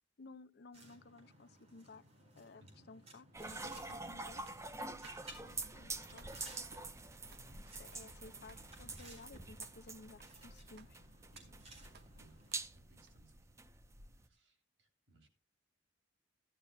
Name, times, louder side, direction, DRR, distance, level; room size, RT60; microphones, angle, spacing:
voice 1, 0.2-2.0 2.4-4.5 5.7-6.4 7.8-11.0, left 3 dB, 60° left, 0.6 m, -56 dB
sound 1, 0.7-12.5, right 1 dB, 35° right, 4.4 m, -59 dB
sound 2, 3.3-14.3, right 3 dB, 15° right, 0.6 m, -47 dB
sound 3, 3.9-13.1, right 5 dB, 60° right, 0.9 m, -66 dB
voice 2, 11.3-11.9 12.2-13.4 14.1-15.3, right 1 dB, 75° right, 3.0 m, -66 dB
15.5 x 12.0 x 2.2 m
head